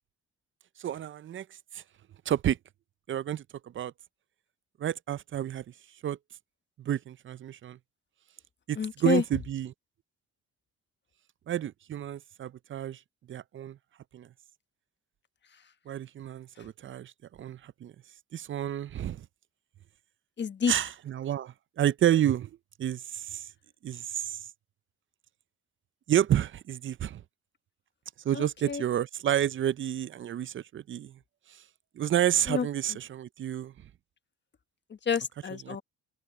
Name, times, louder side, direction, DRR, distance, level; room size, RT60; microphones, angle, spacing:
voice 1, 0.8-1.5 1.7-1.8 2.3-2.6 3.1-3.4 3.7-3.9 4.8-5.6 6.0-6.2 6.8-7.8 8.7-9.7 11.5-13.0 13.3-13.8 14.1-14.3 15.9-17.1 17.4-17.9 18.3-19.3 20.7-22.5 22.8-23.4 23.8-24.4 26.1-27.2 28.2-31.2 32.0-33.7 35.7-35.8, right 11 dB, 40° right, 0.5 m, -30 dB
voice 2, 8.8-9.2 20.4-20.7 28.3-28.8 32.5-32.7 35.1-35.8, left 6 dB, 35° left, 1.3 m, -29 dB
open air
cardioid pair, 90°, 30 cm